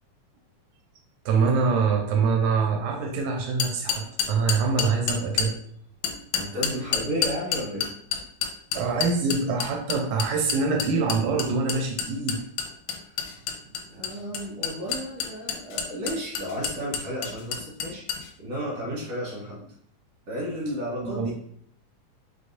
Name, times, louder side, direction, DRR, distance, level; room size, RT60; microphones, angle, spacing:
voice 1, 1.3-5.6 8.7-12.4 21.0-21.3, right 4 dB, 80° right, 2 dB, 2.0 m, -24 dB
sound 1, 3.6-5.5 6.0-18.3, left 8 dB, 80° left, 1.8 m, -28 dB
voice 2, 6.3-7.9 13.6-19.7 20.3-21.3, equal, 60° right, -5 dB, 1.9 m, -33 dB
5.1 x 3.3 x 2.6 m, 0.62 s
omnidirectional pair, 3.5 m